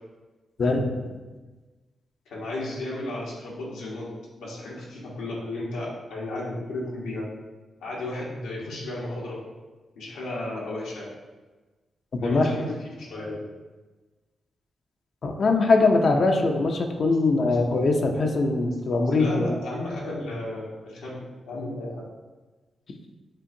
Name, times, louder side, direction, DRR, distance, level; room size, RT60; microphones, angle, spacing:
voice 1, 0.6-0.9 12.2-12.7 15.2-19.5, left 3 dB, 60° left, 3 dB, 0.6 m, -22 dB
voice 2, 2.3-4.1 4.4-7.3 7.8-9.4 9.9-11.1 12.2-13.5 17.3-17.6 19.1-21.2 21.4-22.0, left 1 dB, 90° left, -5 dB, 1.2 m, -34 dB
7.4 x 2.5 x 2.7 m, 1.3 s
supercardioid pair, 50°, 0 cm